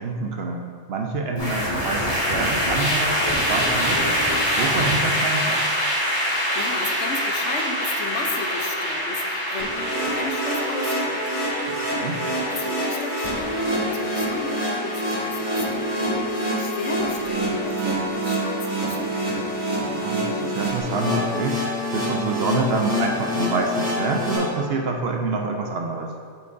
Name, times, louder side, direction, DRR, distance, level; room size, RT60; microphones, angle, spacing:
voice 1, 0.0-4.2 4.6-5.6 11.7-12.2 19.8-26.1, right 3 dB, 60° right, 2 dB, 0.7 m, -27 dB
sound 1, 1.3-20.6, equal, 30° left, 1.9 m, -26 dB
voice 2, 6.3-11.3 12.5-19.6, left 3 dB, 70° left, 3 dB, 1.0 m, -33 dB
sound 2, 9.6-24.4, equal, 35° right, 2.0 m, -26 dB
8.2 x 6.9 x 2.6 m, 2.2 s
omnidirectional pair, 1.3 m